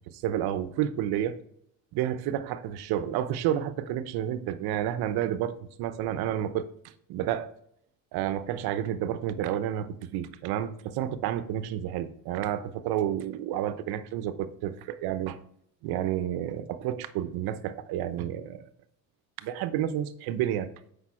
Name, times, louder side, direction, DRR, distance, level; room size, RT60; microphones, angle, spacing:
voice 1, 0.1-1.4 1.9-6.7 7.1-7.5 8.1-15.4 15.8-18.6 19.4-20.7, right 11 dB, 65° right, 0.9 m, -30 dB
8.2 x 5.6 x 4.3 m
supercardioid pair, 100°, 40 cm